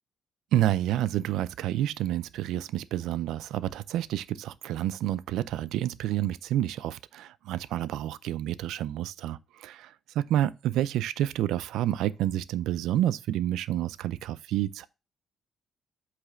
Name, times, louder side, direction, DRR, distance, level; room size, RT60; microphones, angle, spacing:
voice 1, 0.5-14.9, right 12 dB, 85° right, 0.4 m, -29 dB
7.9 x 3.2 x 4.9 m
cardioid pair, 90°, 0 cm